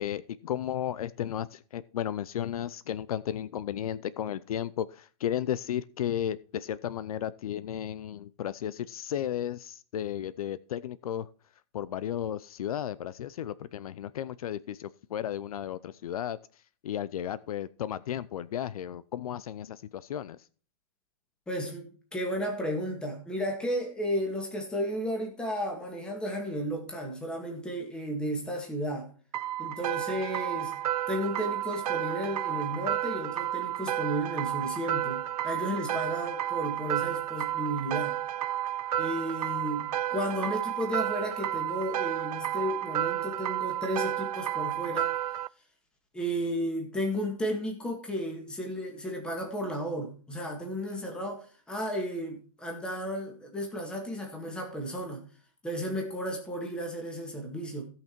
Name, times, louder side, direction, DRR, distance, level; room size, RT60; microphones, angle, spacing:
voice 1, 0.0-11.3 11.7-16.4 16.8-20.4, left 10 dB, 70° left, 18 dB, 0.6 m, -34 dB
voice 2, 21.5-29.1 29.6-30.7 31.1-38.1 39.0-45.1 46.1-55.2 55.6-57.9, equal, 5° left, 2 dB, 1.8 m, -33 dB
sound 1, 29.3-45.5, right 12 dB, 80° right, 0.5 m, -31 dB
16.5 x 5.9 x 4.5 m, 0.40 s
hypercardioid pair, 170°, 19 cm